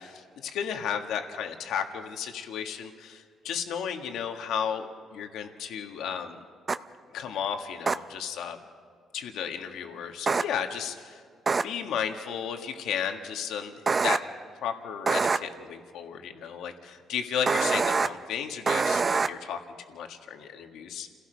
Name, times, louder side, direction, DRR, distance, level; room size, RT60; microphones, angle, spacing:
voice 1, 0.0-6.4 7.1-8.6 9.1-11.2 11.6-13.7 14.0-14.2 14.6-19.6 19.9-21.1, left 8 dB, 85° left, 4 dB, 1.7 m, -34 dB
sound 1, 6.7-6.8 7.9-8.0 10.3-10.4 11.5-11.6 13.9-14.2 15.1-15.4 17.5-18.1 18.7-19.3, right 4 dB, 25° right, 0.5 m, -24 dB
29.5 x 17.0 x 5.2 m, 2.1 s
cardioid pair, 155°, 0 cm